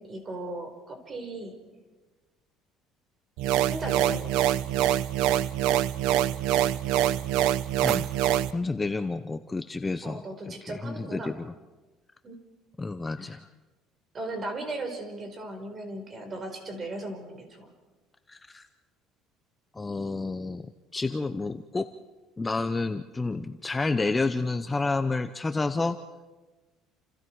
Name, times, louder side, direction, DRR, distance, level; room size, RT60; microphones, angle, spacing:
voice 1, 0.0-1.5 3.7-4.4 10.0-11.3 12.2-12.4 13.0-13.4 14.1-17.5, right 2 dB, 25° right, 5 dB, 4.8 m, -37 dB
sound 1, 3.4-8.5, right 12 dB, 80° right, 0.8 m, -25 dB
sound 2, 7.1-9.1, right 8 dB, 45° right, 0.8 m, -43 dB
voice 2, 8.5-10.2 10.6-11.5 12.8-13.5 18.3-18.7 19.8-20.6 20.9-21.9 22.4-26.0, left 3 dB, 15° left, 9 dB, 0.7 m, -30 dB
29.0 x 28.5 x 4.7 m, 1.3 s
cardioid pair, 145°, 0 cm